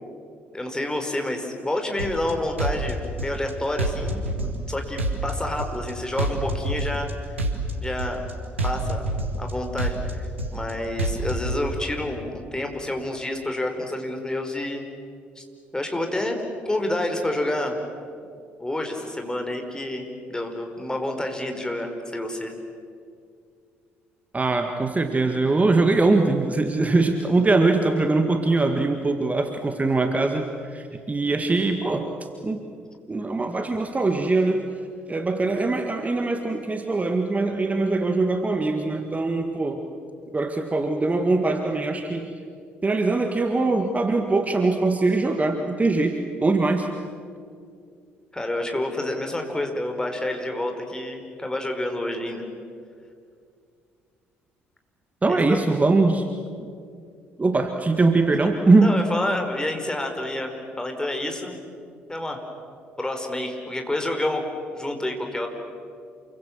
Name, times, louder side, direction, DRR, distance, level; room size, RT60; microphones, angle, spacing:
voice 1, 0.5-8.3 8.6-9.0 9.4-14.8 15.4-15.5 15.7-16.4 16.6-17.8 18.6-22.5 48.3-52.4 55.3-55.6 58.4-58.5 58.8-61.6 62.1-62.4 63.0-64.5 64.7-65.5, left 1 dB, 10° left, 4 dB, 4.8 m, -29 dB
sound 1, 2.0-2.3 2.6-3.5 3.8-4.7 5.0-5.9 6.2-7.1 7.4-8.3 8.6-9.5 9.8-10.7 11.0-11.6, right 1 dB, 85° right, 1.9 m, -27 dB
voice 2, 24.3-32.1 32.4-32.6 33.1-34.7 35.1-39.8 40.3-42.3 42.8-46.9 55.2-56.3 57.4-58.9, right 3 dB, 20° right, 6 dB, 1.8 m, -22 dB
28.5 x 23.5 x 7.3 m, 2.3 s
figure-of-eight pair, 50°, 6 cm